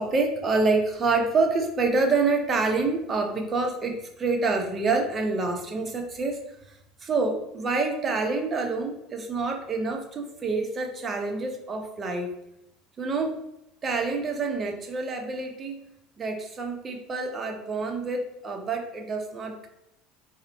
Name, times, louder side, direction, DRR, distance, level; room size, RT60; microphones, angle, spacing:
voice 1, 0.0-6.4 7.0-12.3 13.0-13.4 13.8-15.8 16.2-19.7, right 3 dB, 25° right, 2 dB, 0.6 m, -27 dB
3.9 x 2.1 x 2.6 m, 0.82 s
supercardioid pair, 130°, 0 cm